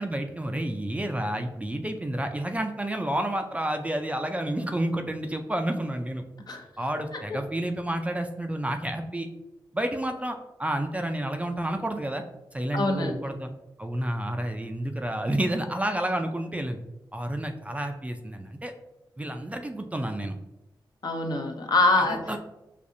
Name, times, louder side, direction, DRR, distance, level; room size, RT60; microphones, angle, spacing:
voice 1, 0.0-6.2 6.8-9.3 9.7-12.2 12.5-13.5 13.8-16.8 17.1-18.7 19.2-20.4 22.0-22.4, right 1 dB, 15° right, 5 dB, 0.4 m, -30 dB
voice 2, 12.7-13.2 21.0-22.2, left 2 dB, 55° left, 3 dB, 0.6 m, -24 dB
4.8 x 2.4 x 2.6 m, 0.95 s
cardioid pair, 70°, 8 cm